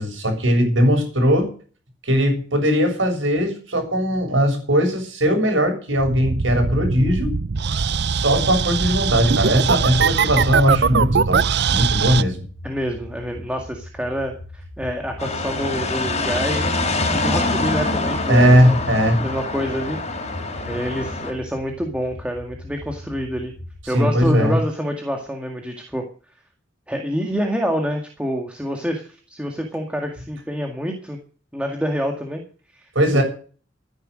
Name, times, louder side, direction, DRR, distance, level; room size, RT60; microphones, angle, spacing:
voice 1, 0.0-1.5 2.0-7.3 8.1-12.4 18.3-19.2 23.8-24.6 33.0-33.2, equal, 85° right, 4 dB, 7.1 m, -19 dB
sound 1, 6.0-12.2, right 5 dB, 60° right, 0.7 m, -21 dB
sound 2, 12.5-23.8, left 1 dB, 70° left, 3.5 m, -39 dB
voice 2, 12.6-16.7 17.1-18.8 19.2-20.3 20.7-23.5 23.9-26.0 26.9-31.2 31.5-32.4 32.7-33.2, equal, 5° right, 2 dB, 2.0 m, -27 dB
sound 3, 15.2-21.3, left 2 dB, 35° left, 4.1 m, -25 dB
14.0 x 10.5 x 6.5 m, 0.40 s
head